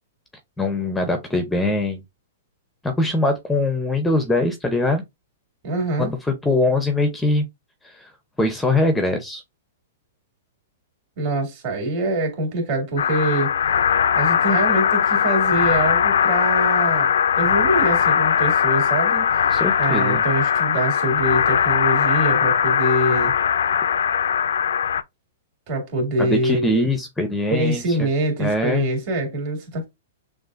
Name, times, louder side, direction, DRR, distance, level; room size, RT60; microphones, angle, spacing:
voice 1, 0.6-2.0 2.8-5.0 6.0-7.4 7.8-8.1 8.4-9.4 19.5-20.2 26.2-28.1 28.4-28.9, left 2 dB, 5° left, 0.6 m, -22 dB
voice 2, 5.6-6.1 11.2-13.6 14.1-19.3 19.8-23.3 25.7-26.9 27.5-29.9, right 1 dB, 40° right, 2.3 m, -24 dB
sound 1, 13.0-25.0, left 8 dB, 85° left, 0.4 m, -20 dB
6.4 x 2.4 x 2.4 m
hypercardioid pair, 150°, 0 cm